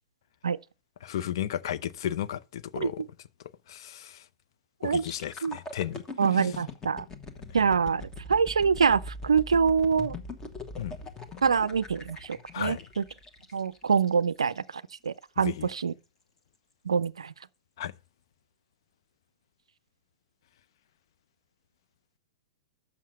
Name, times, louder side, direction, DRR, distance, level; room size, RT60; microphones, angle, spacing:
voice 1, 1.0-3.0 3.7-4.3 4.8-6.5 10.8-11.0 12.5-12.8 15.4-15.7 17.8-17.9, left 11 dB, 55° left, 0.5 m, -34 dB
voice 2, 2.8-3.1 4.8-5.0 5.4-5.6 6.2-7.0 7.5-8.0 8.3-10.1 11.4-13.0 13.5-15.9 16.9-17.3, right 6 dB, 70° right, 0.4 m, -25 dB
sound 1, 4.9-14.7 15.2-15.4, left 2 dB, 20° left, 1.3 m, -42 dB
7.4 x 5.9 x 7.2 m
figure-of-eight pair, 105°, 3 cm